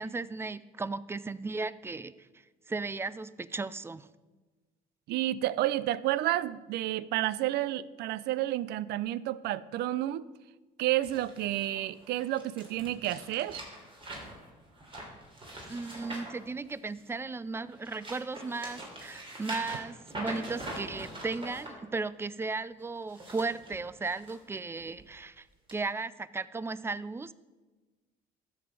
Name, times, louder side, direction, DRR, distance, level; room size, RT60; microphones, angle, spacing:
voice 1, 0.0-2.1 2.7-4.1 15.7-25.5 25.7-27.3, right 3 dB, 15° right, 18 dB, 0.3 m, -36 dB
voice 2, 5.1-10.3 10.8-13.6, right 14 dB, 75° right, 19 dB, 0.4 m, -30 dB
sound 1, 11.0-17.2 17.6-21.7 22.9-24.4 24.8-25.0 25.7-25.8, right 1 dB, 30° right, 3.2 m, -43 dB
13.0 x 7.1 x 4.7 m, 1.2 s
cardioid pair, 110°, 17 cm